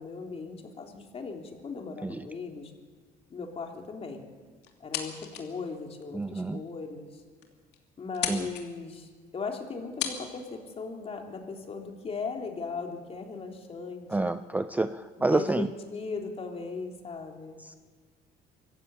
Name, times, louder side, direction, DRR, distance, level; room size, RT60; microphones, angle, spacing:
voice 1, 0.0-2.7 3.3-4.2 4.8-7.2 8.0-14.3 15.2-17.6, left 4 dB, 35° left, 2 dB, 3.5 m, -38 dB
sound 1, 4.6-5.6 6.0-6.1 6.8-6.9 7.1-7.2 7.4-7.8 8.1-8.7 9.6-9.7 10.0-10.2, left 10 dB, 80° left, 2.9 m, -34 dB
voice 2, 6.1-6.6 8.3-8.5 14.1-15.7, right 2 dB, 10° right, 12 dB, 0.6 m, -28 dB
24.5 x 15.0 x 8.5 m, 1.4 s
cardioid pair, 110°, 17 cm